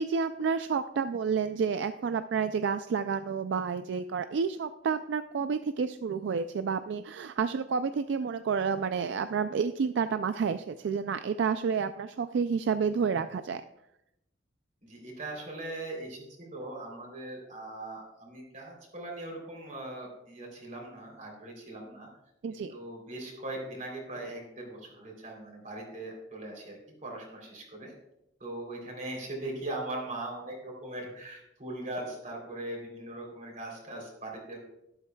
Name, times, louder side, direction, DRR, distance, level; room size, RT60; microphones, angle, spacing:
voice 1, 0.0-13.6 22.4-22.7, right 6 dB, 70° right, 11 dB, 0.3 m, -30 dB
voice 2, 14.8-22.1 22.5-27.9 28.4-34.6, right 2 dB, 40° right, 0 dB, 3.2 m, -40 dB
12.0 x 11.5 x 2.3 m, 0.86 s
head